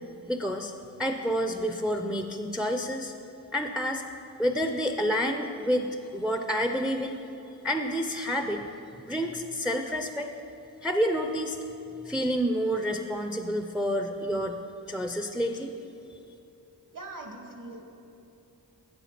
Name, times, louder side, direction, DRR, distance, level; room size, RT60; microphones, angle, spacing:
voice 1, 0.3-0.7 1.0-3.1 3.5-4.0 4.4-7.2 7.6-8.6 9.0-10.3 10.8-11.6 12.0-14.6 14.9-15.7, equal, ahead, 5 dB, 0.4 m, -29 dB
voice 2, 16.9-17.9, right 2 dB, 55° right, 2 dB, 1.3 m, -42 dB
8.0 x 7.0 x 5.8 m, 2.8 s
wide cardioid pair, 75°, 39 cm